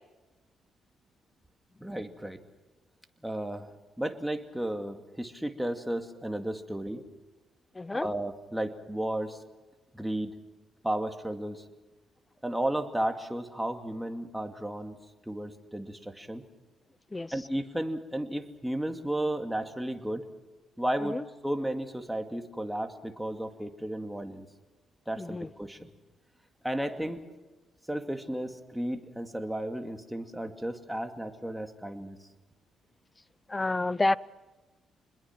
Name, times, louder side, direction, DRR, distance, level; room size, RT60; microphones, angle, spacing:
voice 1, 1.8-2.4 3.2-3.7 4.0-7.0 7.9-9.4 9.9-10.3 10.8-11.6 12.4-15.0 15.3-16.4 17.3-20.3 20.8-24.5 25.1-25.9 26.6-27.2 27.9-32.2, right 1 dB, 5° right, 2.4 m, -33 dB
voice 2, 7.8-8.1 17.1-17.3 21.1-21.2 25.2-25.5 33.5-34.2, left 2 dB, 20° left, 0.7 m, -28 dB
27.0 x 21.5 x 6.1 m
cardioid pair, 90°, 0 cm